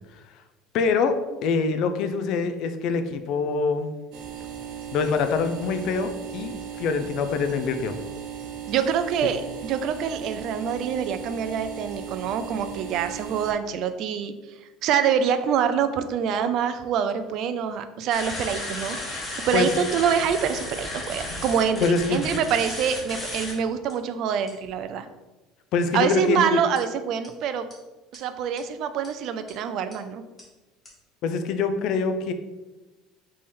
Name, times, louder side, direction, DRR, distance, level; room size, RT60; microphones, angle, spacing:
voice 1, 0.7-1.2 1.4-3.9 4.9-8.0 19.5-19.7 21.8-22.3 25.7-26.6 31.2-32.3, left 5 dB, 50° left, 8 dB, 0.4 m, -24 dB
sound 1, 4.1-13.5, right 8 dB, 65° right, 0.8 m, -37 dB
voice 2, 8.7-14.3 14.6-19.0 19.4-25.1 25.9-27.7 28.1-30.2, right 7 dB, 50° right, 10 dB, 0.3 m, -25 dB
sound 2, 18.1-23.5 23.9-24.0 24.5-24.7 26.8-26.9 27.2-27.3 27.7-27.8 28.1-28.2 28.6-28.7 29.0-29.1 29.5-29.6 29.9-30.0 30.4-30.5 30.9-31.0, left 1 dB, 10° left, 1.2 m, -34 dB
3.6 x 3.2 x 4.2 m, 1.1 s
cardioid pair, 160°, 0 cm